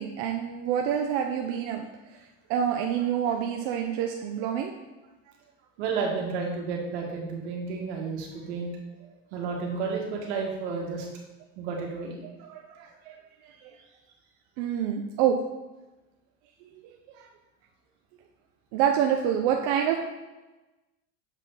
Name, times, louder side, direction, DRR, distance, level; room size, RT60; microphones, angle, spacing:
voice 1, 0.0-1.9 2.5-4.7 12.4-13.2 14.6-15.4 16.8-17.3 18.7-20.0, right 9 dB, 60° right, 2 dB, 0.6 m, -27 dB
voice 2, 5.8-8.7 9.3-11.1 11.6-12.1 12.7-12.8, right 5 dB, 85° right, -1 dB, 1.8 m, -31 dB
7.2 x 3.8 x 4.0 m, 1.1 s
supercardioid pair, 145°, 32 cm